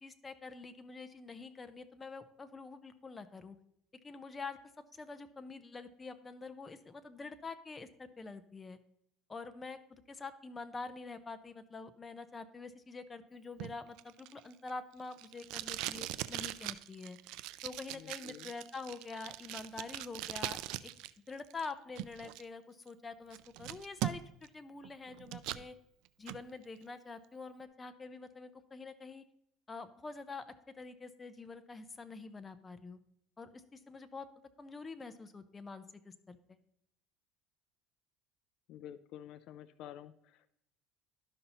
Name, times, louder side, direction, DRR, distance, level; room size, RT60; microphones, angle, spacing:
voice 1, 0.0-3.6 4.0-4.6 4.9-8.8 9.3-17.2 17.6-20.9 21.3-25.7 26.2-29.2 29.7-33.0 33.4-34.3 34.6-36.6, left 4 dB, 20° left, 10 dB, 0.6 m, -46 dB
Packing tape duct tape, 13.6-21.1 21.4-22.4 22.9-23.0 23.3-24.5 24.8-25.6 26.1-26.4, right 15 dB, 70° right, 0.3 m, -41 dB
voice 2, 17.9-18.5 38.7-40.6, left 11 dB, 65° left, 13 dB, 0.4 m, -50 dB
12.0 x 5.5 x 2.9 m, 0.74 s
cardioid pair, 120°, 0 cm